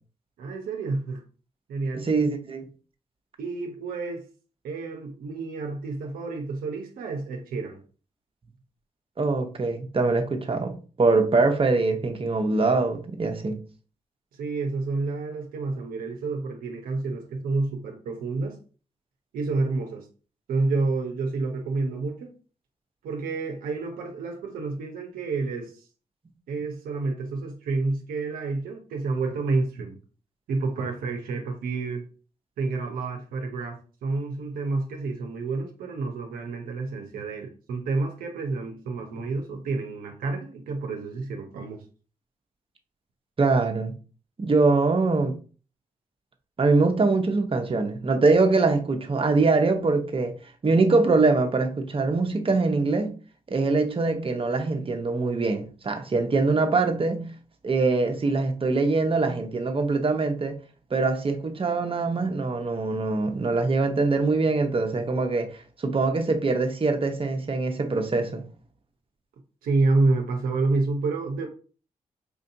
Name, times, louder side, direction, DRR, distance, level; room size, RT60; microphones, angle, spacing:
voice 1, 0.4-1.2 1.7-2.1 3.4-4.2 4.6-7.8 14.4-18.6 19.3-20.1 20.5-22.3 23.0-25.7 26.5-30.0 30.5-32.0 32.6-41.8 69.6-71.5, right 3 dB, 90° right, 0.6 m, -29 dB
voice 2, 1.9-2.7 9.2-13.6 43.4-43.9 44.4-45.3 46.6-50.3 50.6-53.1 53.5-57.3 57.6-60.6 60.9-65.5 65.8-68.4, right 3 dB, 40° right, 0.8 m, -23 dB
4.4 x 2.7 x 2.6 m
supercardioid pair, 45°, 15 cm